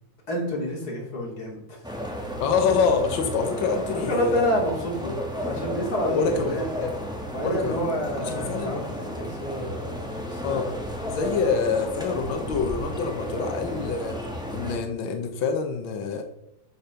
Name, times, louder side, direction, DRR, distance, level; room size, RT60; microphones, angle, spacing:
voice 1, 0.3-1.9 3.9-6.7 7.3-10.8 11.1-11.5, equal, 30° left, -2 dB, 3.1 m, -29 dB
sound 1, 1.8-14.8, equal, ahead, 0.9 m, -33 dB
voice 2, 2.4-4.5 6.0-6.9 7.4-7.8 8.2-8.7 10.4-10.7 11.1-14.2 14.5-16.2, left 5 dB, 90° left, 5 dB, 1.0 m, -26 dB
14.0 x 5.2 x 5.8 m, 0.83 s
omnidirectional pair, 3.7 m